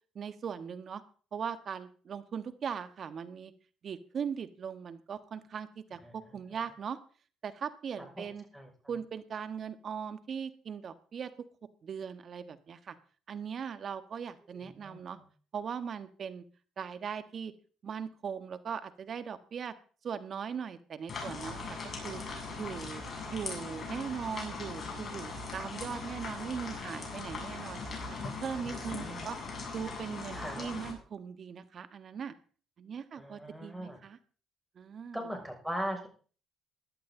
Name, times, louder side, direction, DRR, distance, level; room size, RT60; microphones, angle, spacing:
voice 1, 0.1-1.0 1.3-3.5 3.8-7.0 7.4-8.4 8.9-11.3 11.8-12.9 13.3-15.2 15.5-16.4 16.8-17.5 17.8-19.7 20.0-21.8 22.0-22.2 22.5-27.8 28.4-29.4 29.7-32.3 32.8-34.2 34.7-35.3, right 7 dB, 55° right, 11 dB, 1.5 m, -39 dB
sound 1, 21.1-30.9, left 3 dB, 45° left, 7.1 m, -40 dB
voice 2, 28.8-29.3 30.3-30.7 33.2-34.0 35.1-36.1, equal, 5° right, 2 dB, 6.3 m, -38 dB
16.5 x 11.5 x 3.9 m, 0.41 s
supercardioid pair, 65°, 0 cm